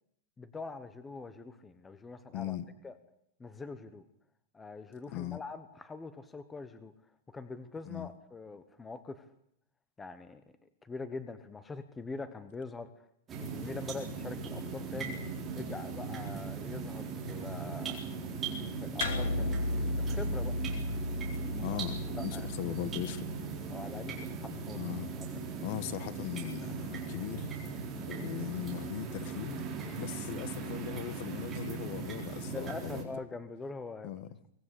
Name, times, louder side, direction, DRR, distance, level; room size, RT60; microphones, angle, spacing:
voice 1, 0.4-2.6 2.8-3.0 3.4-4.0 4.5-6.9 7.3-9.3 10.0-10.4 10.8-12.9 13.4-15.2 15.5-18.0 18.8-19.5 20.0-20.6 22.2-22.5 23.7-24.8 25.5-25.6 29.8-29.9 32.5-34.1, left 3 dB, 10° left, 1.1 m, -43 dB
voice 2, 2.3-2.6 5.1-5.4 7.8-8.1 20.4-20.5 21.6-23.3 24.7-25.1 25.6-27.6 28.1-29.6 30.0-33.1 34.0-34.3, left 13 dB, 35° left, 1.4 m, -39 dB
sound 1, 13.3-33.0, right 5 dB, 15° right, 4.3 m, -39 dB
sound 2, 19.0-23.7, left 1 dB, 70° left, 4.6 m, -35 dB
24.0 x 20.0 x 8.4 m
supercardioid pair, 180°, 0 cm